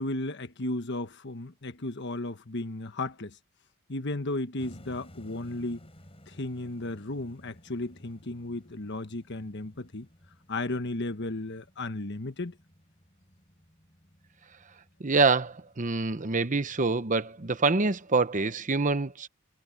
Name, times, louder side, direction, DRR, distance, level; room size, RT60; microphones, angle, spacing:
voice 1, 0.0-3.4 3.9-5.8 6.3-10.1 10.5-12.5, left 2 dB, 55° left, 1.3 m, -34 dB
sound 1, 4.6-18.6, equal, 25° left, 7.9 m, -56 dB
voice 2, 15.0-19.3, right 3 dB, 35° right, 0.9 m, -26 dB
head